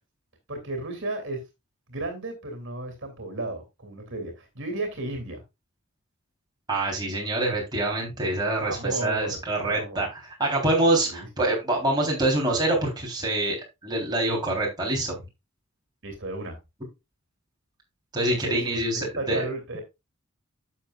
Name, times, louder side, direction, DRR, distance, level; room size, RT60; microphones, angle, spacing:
voice 1, 0.5-1.4 1.9-5.4 8.6-10.0 11.1-11.3 16.0-16.6 18.3-18.8 19.1-19.8, right 2 dB, 60° right, 5 dB, 2.8 m, -33 dB
voice 2, 6.7-13.6 13.8-15.2 18.1-19.5, right 2 dB, 20° right, -2 dB, 3.7 m, -25 dB
11.5 x 7.1 x 2.4 m, 0.23 s
head